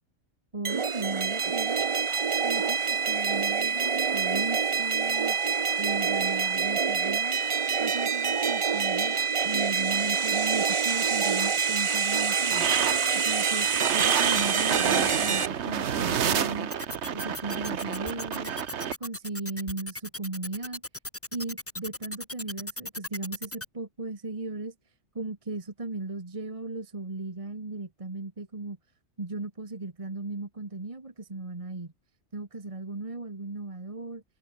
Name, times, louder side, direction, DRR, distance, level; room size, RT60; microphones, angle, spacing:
voice 1, 0.5-1.9 2.4-5.4 5.8-7.5 7.8-12.7 13.2-13.7 13.9-16.7 17.1-18.5 19.0-20.8 21.3-24.7 25.1-28.8 29.2-31.9 32.3-34.2, right 2 dB, 25° right, 1.7 m, -36 dB
sound 1, 0.6-15.5, right 6 dB, 40° right, 0.4 m, -26 dB
sound 2, 12.5-18.9, right 8 dB, 60° right, 1.2 m, -29 dB
sound 3, 16.7-23.6, left 1 dB, 10° left, 1.6 m, -37 dB
omnidirectional pair, 1.4 m